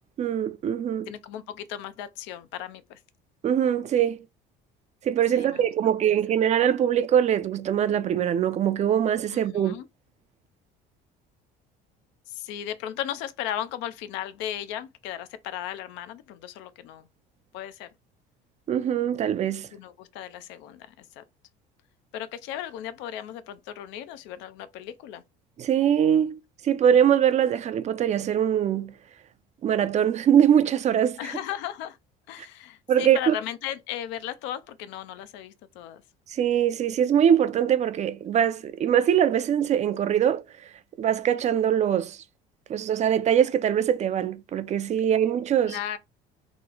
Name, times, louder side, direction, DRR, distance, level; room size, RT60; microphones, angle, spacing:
voice 1, 0.2-1.1 3.4-4.2 5.0-9.8 18.7-19.7 25.6-26.4 26.6-28.9 29.6-31.2 32.9-33.3 36.3-40.4 41.0-42.2 42.7-45.8, right 9 dB, 40° right, 0.4 m, -22 dB
voice 2, 1.1-3.0 5.3-5.6 9.3-9.9 12.3-17.1 17.5-17.9 19.7-21.2 22.1-25.2 31.2-32.0 32.3-36.0 45.6-46.0, left 11 dB, 80° left, 0.5 m, -36 dB
3.0 x 2.1 x 3.8 m
cardioid pair, 105°, 19 cm